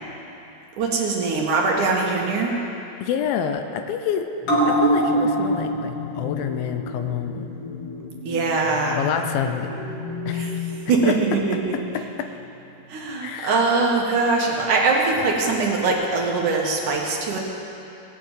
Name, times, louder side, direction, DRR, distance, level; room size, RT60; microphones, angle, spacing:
voice 1, 0.8-2.5 8.2-9.0 10.3-10.5 10.9-11.7 12.9-17.4, right 3 dB, 65° right, -1 dB, 2.8 m, -22 dB
voice 2, 3.0-4.3 4.7-7.5 9.0-9.7 10.3-10.6 11.0-11.2 12.2-12.3 13.2-13.6, left 8 dB, 85° left, 7 dB, 2.5 m, -27 dB
sound 1, 4.4-11.4 11.7-11.8, equal, 45° left, 3.1 m, -26 dB
18.0 x 7.5 x 9.0 m, 2.8 s
omnidirectional pair, 4.1 m